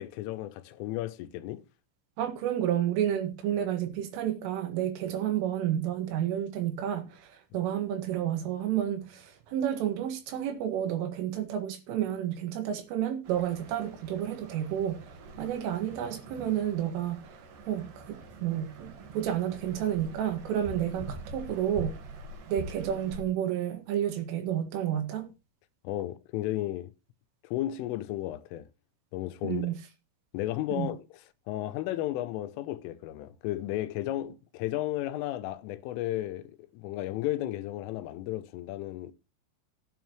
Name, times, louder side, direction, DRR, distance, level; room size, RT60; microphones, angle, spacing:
voice 1, 0.0-1.6 25.8-26.9 27.4-28.7 29.1-29.7 30.3-31.0 31.5-39.1, left 14 dB, 80° left, 3.2 m, -34 dB
voice 2, 2.2-15.0 15.4-17.2 17.7-22.0 22.5-25.3 29.4-29.8 30.7-30.9, right 10 dB, 75° right, 4.3 m, -30 dB
sound 1, 13.2-23.2, right 2 dB, 60° right, 2.6 m, -44 dB
15.5 x 9.2 x 3.1 m
omnidirectional pair, 5.9 m